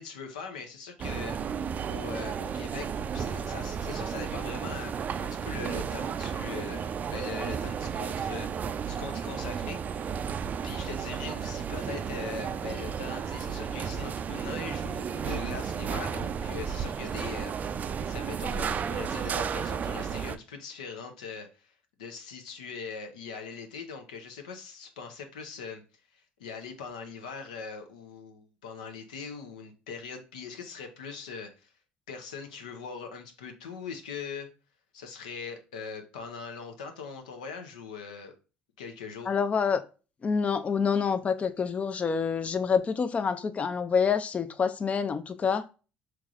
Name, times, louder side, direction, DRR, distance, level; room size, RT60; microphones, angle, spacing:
voice 1, 0.0-1.4 1.9-2.9 3.1-9.8 10.6-25.8 26.1-31.7 32.1-34.5 34.9-38.3 38.8-39.3, left 5 dB, 90° left, 0.7 m, -41 dB
sound 1, 1.0-20.4, right 7 dB, 40° right, 0.3 m, -33 dB
voice 2, 39.3-39.8 40.2-45.7, left 6 dB, 35° left, 0.4 m, -27 dB
4.6 x 3.1 x 2.4 m
hypercardioid pair, 65°, 4 cm